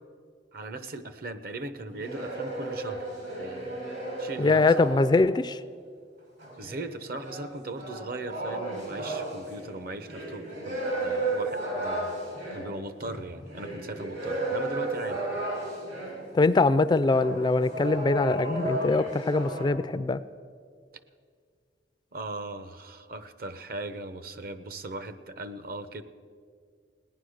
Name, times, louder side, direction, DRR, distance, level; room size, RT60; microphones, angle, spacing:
voice 1, 0.5-3.1 3.4-3.8 4.2-4.9 6.6-12.2 12.5-15.2 22.1-26.0, right 2 dB, 55° right, 11 dB, 0.8 m, -39 dB
sound 1, 1.9-5.4 6.4-16.3 17.0-19.7, right 2 dB, 80° right, 4.3 m, -34 dB
voice 2, 4.4-5.6 16.3-20.2, left 3 dB, 25° left, 14 dB, 0.3 m, -23 dB
17.5 x 10.0 x 6.4 m, 2.1 s
head